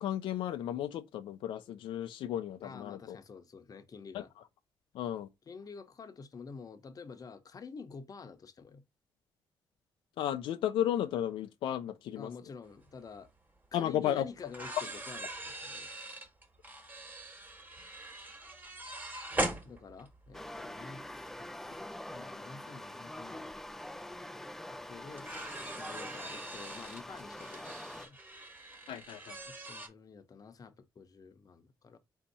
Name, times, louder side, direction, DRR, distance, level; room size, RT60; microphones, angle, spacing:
voice 1, 0.0-3.2 4.9-5.3 10.2-12.3 13.7-14.2 28.9-29.4, left 11 dB, 85° left, 0.4 m, -34 dB
voice 2, 2.6-4.3 5.5-8.8 12.2-13.3 13.7-15.9 19.6-21.8 22.1-23.5 24.7-25.3 25.8-28.2 29.5-32.0, left 5 dB, 45° left, 0.8 m, -49 dB
sound 1, 13.1-13.2 14.4-20.4 21.7-21.8 23.5-23.6 23.9-24.0 25.2-29.9, right 1 dB, 20° right, 1.5 m, -41 dB
sound 2, 20.3-28.1, left 1 dB, 5° left, 0.4 m, -45 dB
4.2 x 2.7 x 4.0 m
cardioid pair, 80°, 9 cm